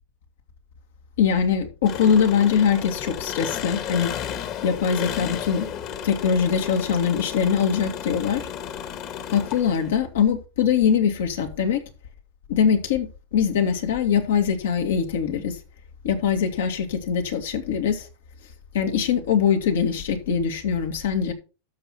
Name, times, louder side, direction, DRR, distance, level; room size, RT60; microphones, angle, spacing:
voice 1, 1.2-4.1 4.6-5.7 6.0-8.4 9.3-11.8 12.5-13.1 13.3-15.6 16.0-18.1 18.7-21.3, left 7 dB, 80° left, 2.2 m, -22 dB
Engine, 1.9-10.0, left 9 dB, 50° left, 1.7 m, -33 dB
12.0 x 6.4 x 4.3 m
hypercardioid pair, 115°, 0 cm